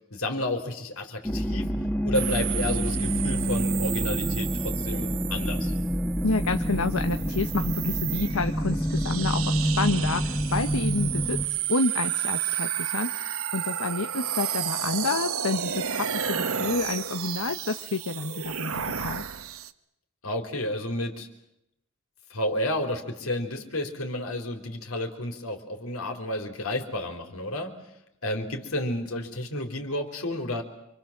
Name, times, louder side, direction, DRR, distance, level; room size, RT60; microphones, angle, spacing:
voice 1, 0.1-1.7 2.0-5.7 20.2-21.3 22.3-27.8 28.2-30.6, left 1 dB, 75° left, 5 dB, 4.1 m, -31 dB
sound 1, 1.2-11.4, equal, 10° left, 1.6 m, -28 dB
sound 2, 2.1-19.7, right 10 dB, 70° right, 1.3 m, -32 dB
voice 2, 6.2-19.2, left 3 dB, 90° left, 7 dB, 1.3 m, -29 dB
28.5 x 26.0 x 7.5 m, 0.80 s
head